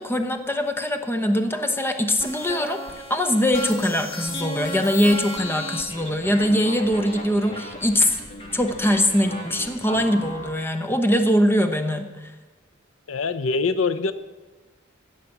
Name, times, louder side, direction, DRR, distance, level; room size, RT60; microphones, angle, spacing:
voice 1, 0.0-8.2 8.5-12.3, equal, 10° left, 7 dB, 0.9 m, -22 dB
sound 1, 2.2-10.5, left 1 dB, 30° left, 2.0 m, -35 dB
voice 2, 13.1-14.1, left 4 dB, 75° left, 12 dB, 0.6 m, -23 dB
15.0 x 5.8 x 7.9 m, 1.3 s
head